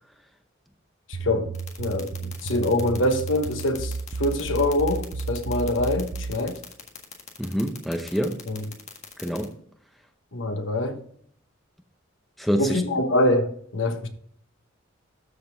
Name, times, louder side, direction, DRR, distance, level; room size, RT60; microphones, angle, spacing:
voice 1, 1.1-1.5 1.8-6.6 8.5-8.6 10.3-11.0 12.6-14.1, left 1 dB, 65° left, 1.2 m, -25 dB
sound 1, 1.1-6.4, right 4 dB, 85° right, 0.7 m, -33 dB
sound 2, 1.5-9.4, left 7 dB, 35° left, 1.6 m, -40 dB
voice 2, 7.4-8.4 9.2-9.5 12.4-12.8, equal, ahead, 0.7 m, -26 dB
13.0 x 5.2 x 3.5 m
head